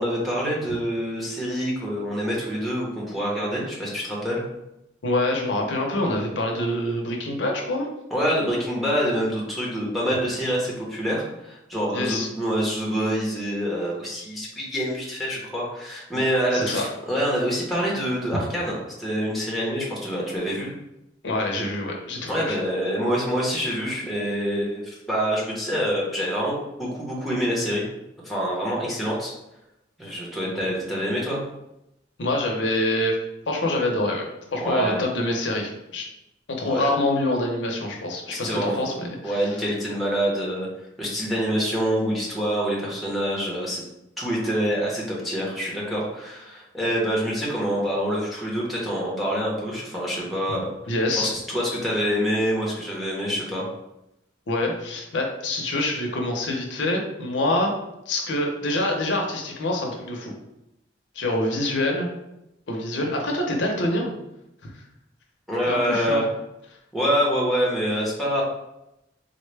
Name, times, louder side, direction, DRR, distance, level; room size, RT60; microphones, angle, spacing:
voice 1, 0.0-4.4 8.1-20.7 22.3-27.8 28.2-29.3 30.0-31.4 34.6-35.0 36.6-36.9 38.3-39.0 39.2-40.7 41.0-43.8 44.2-53.7 65.5-66.2 66.9-68.4, equal, ahead, -5 dB, 0.8 m, -26 dB
voice 2, 5.0-7.9 11.9-12.3 16.1-16.2 16.5-16.9 21.2-22.6 32.2-33.2 33.5-36.0 36.5-39.6 50.9-51.3 54.5-57.7 58.1-60.3 61.1-62.1 62.7-64.1 64.6-64.7 65.7-66.2, left 1 dB, 85° left, 1 dB, 0.7 m, -26 dB
4.0 x 2.2 x 3.2 m, 0.87 s
head